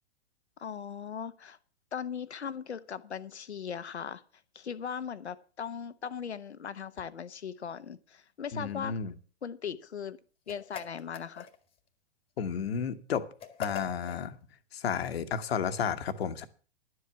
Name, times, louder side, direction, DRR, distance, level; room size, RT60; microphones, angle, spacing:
voice 1, 0.6-1.6 1.9-4.2 4.5-9.0 9.4-10.2 10.5-11.5, left 7 dB, 85° left, 14 dB, 1.0 m, -39 dB
voice 2, 8.5-9.1 12.4-13.2 13.6-14.4 14.7-16.4, left 7 dB, 70° left, 9 dB, 1.4 m, -32 dB
sound 1, 10.5-11.8 13.4-14.2, left 7 dB, 15° left, 1.6 m, -42 dB
11.5 x 8.0 x 6.8 m, 0.39 s
hypercardioid pair, 110°, 33 cm